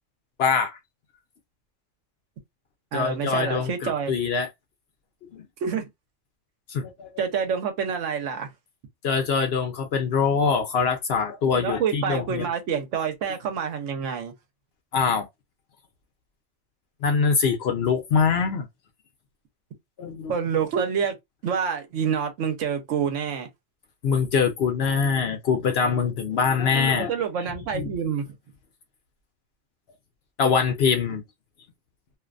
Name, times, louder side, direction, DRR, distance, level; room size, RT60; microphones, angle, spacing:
voice 1, 0.4-0.8 2.9-4.5 5.3-5.4 6.7-7.1 9.0-12.5 14.9-15.3 17.0-18.7 20.0-20.3 24.0-27.1 27.7-27.9 30.4-31.2, left 6 dB, 65° left, 0.7 m, -23 dB
voice 2, 2.9-4.1 5.6-5.8 7.2-8.5 11.6-14.3 20.3-21.2 21.4-23.5 26.9-28.3, right 7 dB, 75° right, 1.0 m, -27 dB
2.5 x 2.1 x 2.4 m
omnidirectional pair, 1.3 m